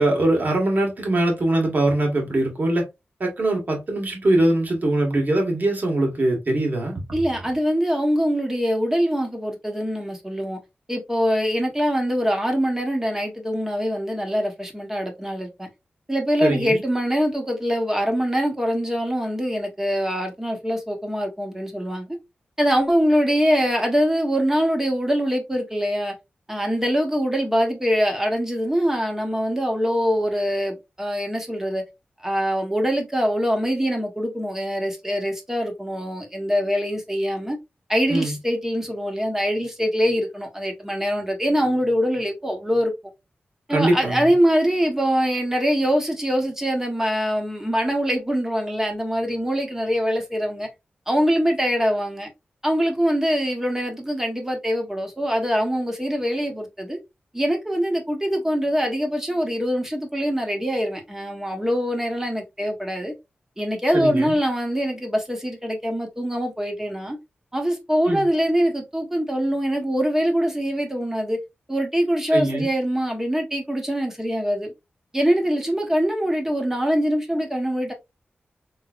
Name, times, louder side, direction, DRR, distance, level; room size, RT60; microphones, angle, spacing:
voice 1, 0.0-2.8 3.2-7.0 16.4-16.8 38.1-38.4 43.7-44.3 63.9-64.4 68.1-68.2 72.3-72.7, right 1 dB, 50° right, 1.8 m, -22 dB
voice 2, 7.1-10.6 10.9-15.7 16.1-22.1 22.6-26.1 26.5-31.8 32.2-37.6 37.9-42.9 43.7-50.7 51.1-52.3 52.6-57.0 57.3-63.1 63.6-67.2 67.5-71.4 71.7-74.7 75.1-77.9, equal, 10° right, 1.3 m, -23 dB
3.8 x 3.2 x 2.5 m
cardioid pair, 70°, 4 cm